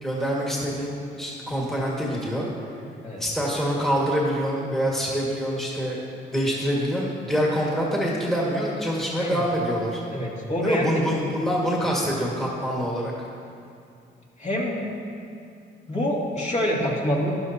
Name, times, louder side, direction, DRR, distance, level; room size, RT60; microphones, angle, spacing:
voice 1, 0.0-2.5 3.2-6.0 6.3-10.0 10.6-13.1, equal, ahead, -4 dB, 1.9 m, -25 dB
voice 2, 10.1-11.0 14.4-14.9 15.9-17.3, equal, 35° left, -4 dB, 2.4 m, -26 dB
13.0 x 11.0 x 2.9 m, 2.4 s
cardioid pair, 90°, 20 cm